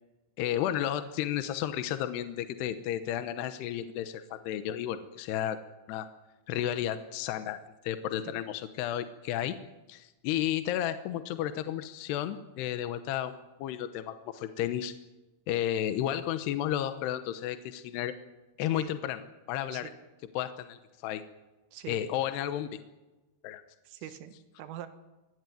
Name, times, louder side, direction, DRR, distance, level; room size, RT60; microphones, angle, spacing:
voice 1, 0.4-5.6 5.9-6.1 6.5-9.6 9.9-13.3 13.6-14.9 15.5-18.1 18.6-19.2 19.5-19.9 20.4-21.2 21.9-22.7 23.4-23.6, left 11 dB, 75° left, 10 dB, 2.6 m, -32 dB
voice 2, 21.7-22.1 23.9-24.9, right 11 dB, 85° right, 9 dB, 4.2 m, -43 dB
23.5 x 17.0 x 9.2 m, 1.1 s
omnidirectional pair, 5.8 m